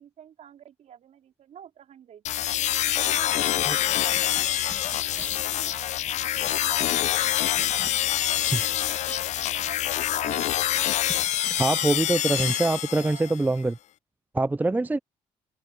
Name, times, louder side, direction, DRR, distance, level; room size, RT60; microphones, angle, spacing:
voice 1, 0.0-2.4 2.9-9.8 10.1-10.5 11.7-13.4, right 9 dB, 65° right, 4.6 m, -48 dB
sound 1, 2.2-13.4, left 13 dB, 65° left, 0.6 m, -26 dB
sound 2, 3.0-10.0 10.5-12.8, left 1 dB, 10° left, 3.0 m, -42 dB
voice 2, 11.6-13.8 14.3-15.0, right 2 dB, 15° right, 0.5 m, -24 dB
open air
supercardioid pair, 55°, 13 cm